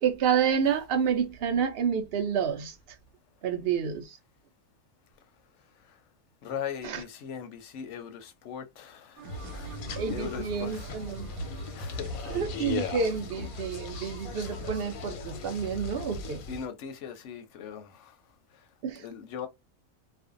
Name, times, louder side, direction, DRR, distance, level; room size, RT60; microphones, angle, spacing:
voice 1, 0.0-2.7 3.4-4.2 6.8-7.0 10.0-11.3 12.3-16.4 18.8-19.0, right 7 dB, 65° right, 0.6 m, -29 dB
voice 2, 6.4-10.9 11.5-12.4 16.5-18.2 18.5-18.7 18.9-19.5, left 8 dB, 65° left, 0.8 m, -40 dB
sound 1, 9.2-16.7, left 4 dB, 90° left, 1.1 m, -38 dB
sound 2, 9.2-14.8, right 2 dB, 90° right, 1.1 m, -43 dB
2.5 x 2.1 x 2.4 m
omnidirectional pair, 1.5 m